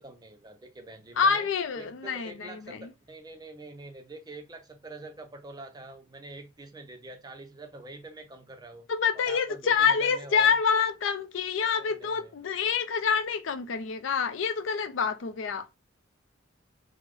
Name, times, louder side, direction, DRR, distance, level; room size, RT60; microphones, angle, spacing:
voice 1, 0.0-1.5 1.7-8.9 9.1-10.6 11.7-12.3, right 2 dB, 20° right, 0.4 m, -45 dB
voice 2, 1.2-2.9 8.9-15.6, left 6 dB, 75° left, 0.4 m, -27 dB
3.2 x 2.0 x 3.6 m
head